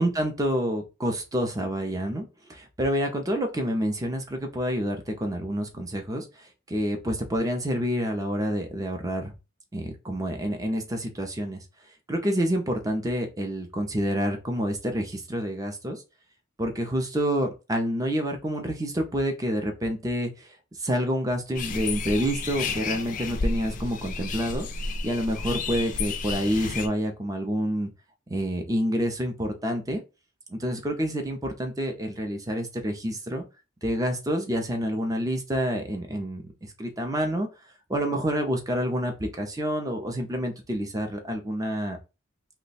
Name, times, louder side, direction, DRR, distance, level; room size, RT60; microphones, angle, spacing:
voice 1, 0.0-9.3 9.7-11.6 12.1-16.0 16.6-24.7 25.0-27.9 28.3-30.0 30.5-33.4 33.8-37.5 37.9-42.0, equal, 15° right, 4 dB, 0.6 m, -28 dB
sound 1, 21.5-26.9, left 4 dB, 40° left, 0.4 m, -31 dB
3.0 x 2.2 x 4.1 m, 0.28 s
head